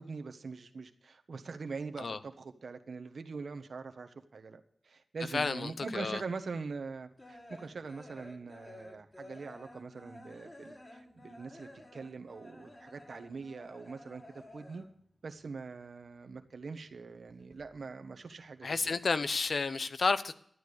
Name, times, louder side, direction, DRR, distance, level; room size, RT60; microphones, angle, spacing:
voice 1, 0.0-14.2 14.5-14.8 15.2-18.9, right 4 dB, 75° right, 7 dB, 1.3 m, -43 dB
voice 2, 5.3-6.2 18.6-20.3, left 4 dB, 70° left, 13 dB, 0.8 m, -31 dB
sound 1, 7.0-15.1 15.4-16.6 16.8-18.2 18.5-19.2, left 1 dB, 35° left, 3.3 m, -53 dB
12.5 x 9.4 x 6.7 m, 0.64 s
cardioid pair, 50°, 0 cm